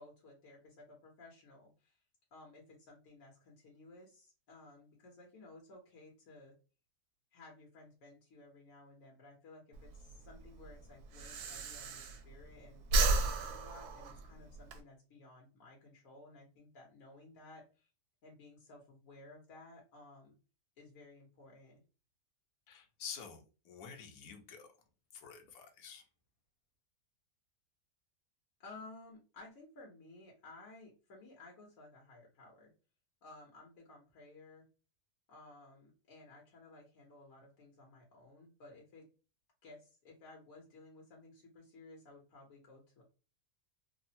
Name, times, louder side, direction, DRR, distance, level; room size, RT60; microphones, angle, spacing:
voice 1, 0.0-2.0 2.3-6.5 7.3-17.9 18.2-20.3 20.8-21.8 28.6-32.7 33.2-34.7 35.3-39.1 39.6-43.0, left 2 dB, 65° left, 1.4 m, -56 dB
Breathing, 9.7-12.5 12.8-14.8, right 2 dB, 90° right, 1.1 m, -33 dB
voice 2, 22.7-24.7 25.1-26.0, left 7 dB, 80° left, 1.2 m, -49 dB
3.5 x 2.1 x 2.7 m
omnidirectional pair, 1.6 m